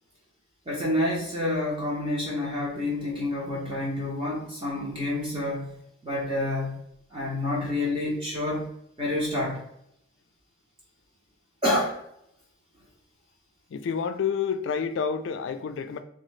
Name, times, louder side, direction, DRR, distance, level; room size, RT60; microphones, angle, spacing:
voice 1, 0.7-5.8 6.0-6.8 7.1-8.7 9.0-9.6 11.6-12.0, left 1 dB, 25° right, 0.7 m, -28 dB
voice 2, 13.7-16.0, left 6 dB, 70° left, 0.3 m, -29 dB
3.7 x 2.3 x 3.1 m
head